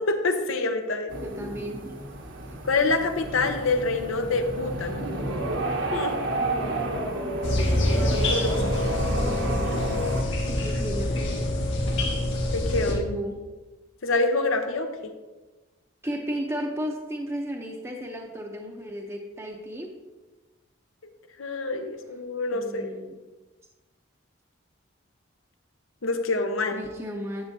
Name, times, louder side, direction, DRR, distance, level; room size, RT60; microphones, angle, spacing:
voice 1, 0.0-1.1 2.6-5.0 5.9-6.1 7.9-8.8 12.5-13.0 14.0-14.9 21.4-22.9 26.0-26.8, left 3 dB, 90° left, 6 dB, 0.9 m, -26 dB
sound 1, 1.1-10.2, right 1 dB, 75° right, 1.2 m, -30 dB
voice 2, 1.2-2.0 9.1-9.7 10.3-11.5 12.9-13.4 16.0-19.9 22.5-23.1 26.7-27.4, equal, 15° right, -1 dB, 0.7 m, -34 dB
sound 2, 7.4-12.9, left 1 dB, 70° left, 1.9 m, -26 dB
10.5 x 7.9 x 2.7 m, 1.2 s
head